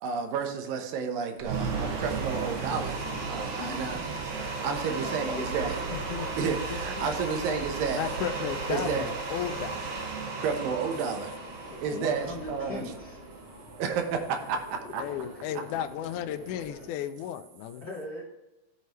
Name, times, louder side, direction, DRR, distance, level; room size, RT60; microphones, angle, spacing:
voice 1, 0.0-5.7 6.3-8.0 8.7-9.1 10.4-11.3 11.8-12.8 13.8-15.0, right 6 dB, 80° right, 4 dB, 2.7 m, -31 dB
sound 1, 1.4-13.5, right 4 dB, 65° right, 1.3 m, -35 dB
sound 2, 2.6-16.9, right 1 dB, 10° right, 2.2 m, -46 dB
voice 2, 3.6-4.1 5.0-6.0 11.7-13.2 14.8-14.9 17.8-18.2, left 2 dB, 65° left, -4 dB, 0.9 m, -40 dB
voice 3, 5.9-7.1 7.5-7.6 7.9-9.9 15.0-17.9, left 10 dB, 80° left, 8 dB, 1.8 m, -35 dB
14.0 x 5.6 x 3.1 m, 1.0 s
omnidirectional pair, 4.0 m